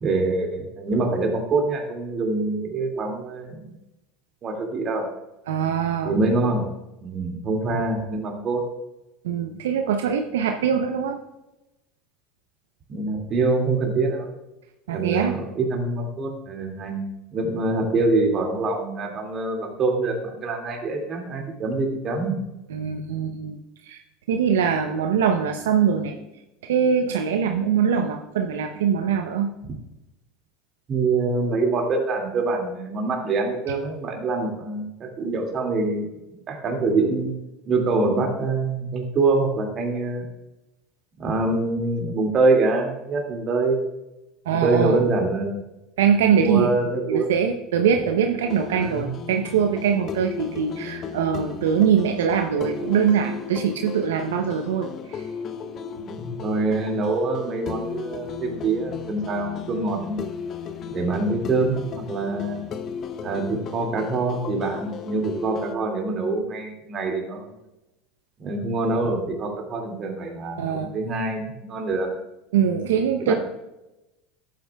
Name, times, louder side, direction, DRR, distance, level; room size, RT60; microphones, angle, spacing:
voice 1, 0.0-3.7 4.4-5.1 6.0-6.7 7.0-8.6 12.9-14.3 14.9-17.1 17.3-22.4 30.9-36.1 36.5-37.3 37.7-40.2 41.2-43.8 44.5-45.6 46.3-47.3 48.7-49.2 56.0-60.2 60.9-62.6 63.2-67.5 68.4-72.1 73.2-73.4, right 3 dB, 40° right, 2 dB, 2.2 m, -25 dB
voice 2, 5.5-6.1 9.2-11.2 14.9-15.3 22.7-24.0 24.3-26.2 26.6-29.5 44.5-45.0 46.0-46.7 47.1-55.2 70.6-70.9 72.5-73.4, right 7 dB, 80° right, 5 dB, 0.6 m, -22 dB
sound 1, 48.5-65.8, left 6 dB, 45° left, 0.6 m, -35 dB
11.5 x 8.5 x 2.3 m, 0.95 s
hypercardioid pair, 85°, 0 cm